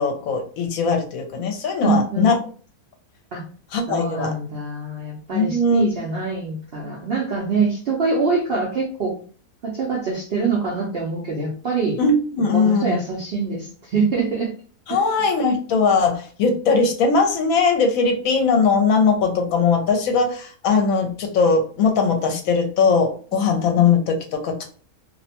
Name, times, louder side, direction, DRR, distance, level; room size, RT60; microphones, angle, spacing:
voice 1, 0.0-2.3 3.7-4.3 5.3-5.9 12.0-13.0 14.9-24.6, left 4 dB, 75° left, 3 dB, 1.0 m, -20 dB
voice 2, 1.8-2.3 3.3-3.4 3.9-9.2 9.6-12.0 12.5-14.5 14.9-15.0, right 4 dB, 65° right, -2 dB, 0.6 m, -24 dB
2.5 x 2.1 x 2.7 m, 0.41 s
omnidirectional pair, 1.5 m